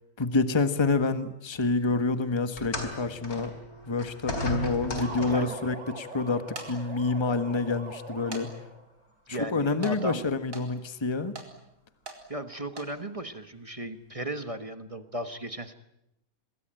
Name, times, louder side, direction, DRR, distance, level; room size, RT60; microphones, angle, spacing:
voice 1, 0.2-3.5 3.9-8.5 9.3-11.3, left 3 dB, 20° left, 10 dB, 1.3 m, -28 dB
sound 1, 2.6-5.6 6.6-6.8 7.6-7.7, left 1 dB, 90° left, 4.6 m, -35 dB
sound 2, 5.0-8.9, right 1 dB, 50° right, 4.0 m, -42 dB
sound 3, 5.0-5.1 6.3-6.7 7.3-7.4 8.3-8.5 8.7-8.8 9.8-10.0 10.5-10.7 11.3-11.5 12.1-12.2 12.7-12.9, right 3 dB, 65° right, 4.5 m, -41 dB
voice 2, 5.2-5.6 9.3-10.2 12.3-15.7, right 1 dB, 25° right, 9 dB, 1.3 m, -36 dB
26.0 x 21.5 x 9.0 m, 0.86 s
omnidirectional pair, 1.5 m